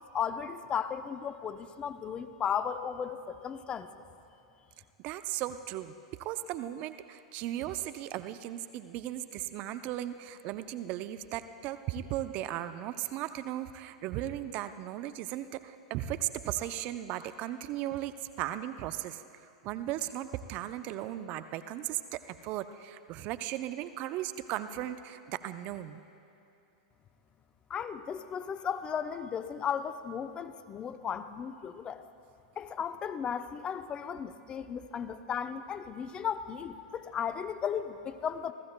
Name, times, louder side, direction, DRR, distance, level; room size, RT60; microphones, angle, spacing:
voice 1, 0.1-3.9 27.7-32.0 32.6-38.5, left 7 dB, 25° left, 11 dB, 0.6 m, -35 dB
voice 2, 5.0-5.9 6.2-19.2 19.6-26.0, right 13 dB, 45° right, 12 dB, 0.5 m, -36 dB
29.5 x 15.0 x 2.2 m, 2.8 s
hypercardioid pair, 100°, 3 cm